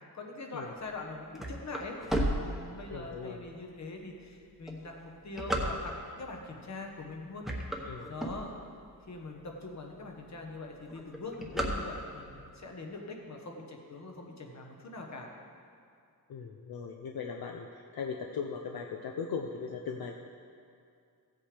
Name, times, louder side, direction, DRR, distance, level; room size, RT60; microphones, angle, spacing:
voice 1, 0.1-2.0 2.4-7.5 8.1-8.5 9.1-15.3, left 2 dB, 45° left, 1 dB, 1.2 m, -43 dB
sound 1, 0.9-3.2 3.7-3.8 4.5-6.2 6.8-7.1 7.4-8.9 9.4-9.5 9.7-9.8 10.1-10.5 10.7-12.4, right 1 dB, ahead, 0.9 m, -33 dB
voice 2, 2.9-3.4 7.8-8.1 16.3-20.2, left 6 dB, 70° left, 3 dB, 0.6 m, -38 dB
15.0 x 8.4 x 3.4 m, 2.4 s
wide cardioid pair, 160°, 37 cm